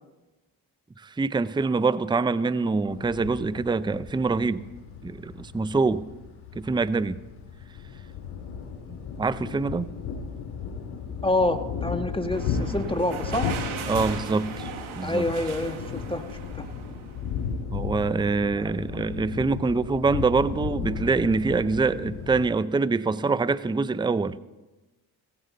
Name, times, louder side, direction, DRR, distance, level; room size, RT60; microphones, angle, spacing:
voice 1, 1.0-4.7 5.0-6.1 6.5-7.2 9.2-9.9 13.9-14.7 15.0-15.2 17.7-24.4, right 4 dB, 10° right, 0.5 m, -25 dB
sound 1, 2.9-22.4, left 6 dB, 85° left, 2.9 m, -35 dB
voice 2, 11.2-13.5 15.0-16.2 16.5-16.6, left 2 dB, 10° left, 1.6 m, -27 dB
sound 2, 12.3-17.5, right 7 dB, 75° right, 1.6 m, -38 dB
16.0 x 16.0 x 4.0 m
supercardioid pair, 50°, 48 cm